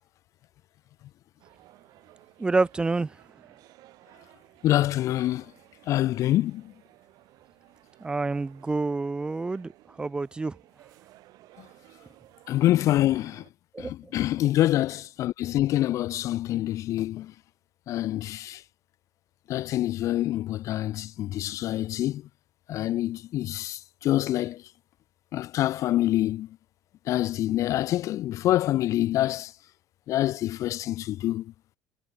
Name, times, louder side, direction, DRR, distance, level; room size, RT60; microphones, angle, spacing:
sound 1, 1.4-13.5, right 17 dB, 60° right, 5.1 m, -56 dB
voice 1, 2.4-3.2 8.0-9.7 10.0-10.6 13.7-14.1, right 3 dB, 10° right, 0.5 m, -28 dB
voice 2, 4.6-5.4 5.9-6.7 12.5-13.4 13.8-17.3 17.9-18.6 19.5-22.2 22.7-24.6 25.3-26.5 27.1-29.5 30.1-31.5, left 14 dB, 45° left, 0.4 m, -26 dB
cardioid pair, 140°, 7 cm